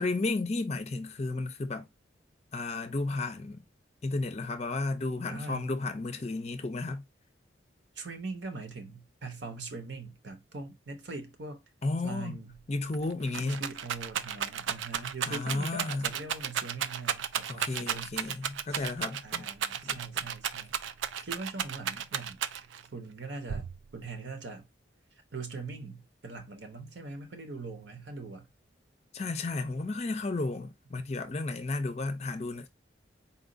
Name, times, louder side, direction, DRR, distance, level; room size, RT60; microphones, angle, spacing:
voice 1, 0.0-1.9 2.5-3.6 4.0-7.0 11.8-12.4 12.7-13.6 15.3-16.1 17.5-19.5 19.8-20.2 29.1-32.7, left 3 dB, 35° left, 0.5 m, -33 dB
voice 2, 5.3-5.7 8.0-11.6 12.0-12.6 13.4-18.1 18.7-18.9 19.2-20.8 21.2-22.4 22.9-24.7 25.3-28.5, right 3 dB, 70° right, 1.0 m, -42 dB
Rattle, 12.6-12.7 12.9-22.9 23.5-24.1, right 8 dB, 85° right, 0.4 m, -34 dB
4.2 x 2.4 x 3.8 m
head